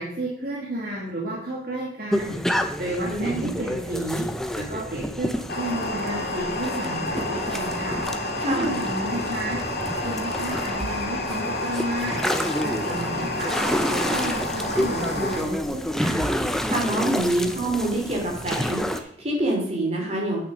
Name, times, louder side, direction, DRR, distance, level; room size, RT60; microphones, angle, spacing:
voice 1, 0.0-2.4 2.8-4.2 4.5-8.0 8.5-9.6 10.0-13.5 13.9-16.3, right 1 dB, 55° right, -4 dB, 2.3 m, -31 dB
sound 1, 2.1-19.0, equal, ahead, 0.6 m, -29 dB
voice 2, 3.1-3.5 8.4-8.8 16.6-20.4, right 1 dB, 35° right, -2 dB, 3.3 m, -26 dB
sound 2, 5.5-15.4, left 1 dB, 55° left, 2.4 m, -29 dB
sound 3, 10.8-11.6 13.3-14.2 16.0-17.0, right 1 dB, 75° right, 3.5 m, -40 dB
8.8 x 6.6 x 6.3 m, 0.67 s
head